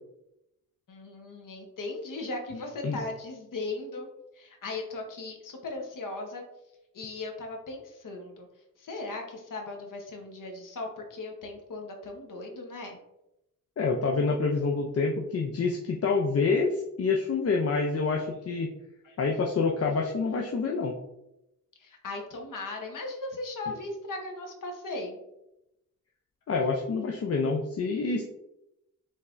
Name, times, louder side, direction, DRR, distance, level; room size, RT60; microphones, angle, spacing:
voice 1, 0.9-4.1 4.3-6.4 6.9-8.5 8.8-13.0 19.0-19.2 21.8-25.2, left 2 dB, 80° left, 2 dB, 0.9 m, -38 dB
voice 2, 13.8-18.7 19.2-20.9 26.5-28.2, left 4 dB, 50° left, 1 dB, 0.5 m, -27 dB
5.4 x 3.2 x 2.5 m, 0.88 s
wide cardioid pair, 145°, 32 cm